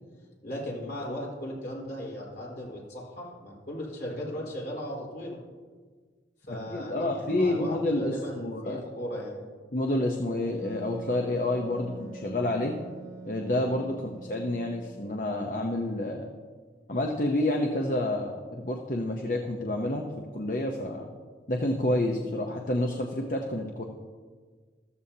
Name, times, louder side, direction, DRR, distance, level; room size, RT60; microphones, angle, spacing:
voice 1, 0.4-5.4 6.5-9.4 13.7-13.9, equal, 65° left, -4 dB, 4.0 m, -37 dB
voice 2, 6.7-8.8 9.7-12.8 13.2-16.3 16.9-21.1 21.5-23.8, left 1 dB, 50° left, 2 dB, 0.8 m, -29 dB
Wind instrument woodwind instrument, 10.6-16.0, right 3 dB, 15° right, 1.4 m, -45 dB
14.0 x 14.0 x 2.8 m, 1.5 s
head